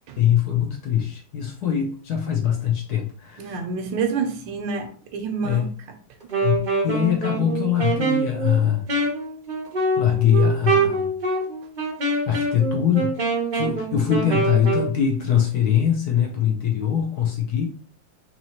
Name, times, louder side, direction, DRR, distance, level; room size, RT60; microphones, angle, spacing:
voice 1, 0.2-3.5 5.4-5.7 6.4-8.8 10.0-11.1 12.3-13.2 13.5-17.6, left 9 dB, 65° left, 1.0 m, -22 dB
voice 2, 3.4-6.0, right 5 dB, 75° right, 1.4 m, -28 dB
Wind instrument woodwind instrument, 6.2-14.9, right 3 dB, 50° right, 0.5 m, -25 dB
4.0 x 3.0 x 2.9 m
omnidirectional pair, 2.1 m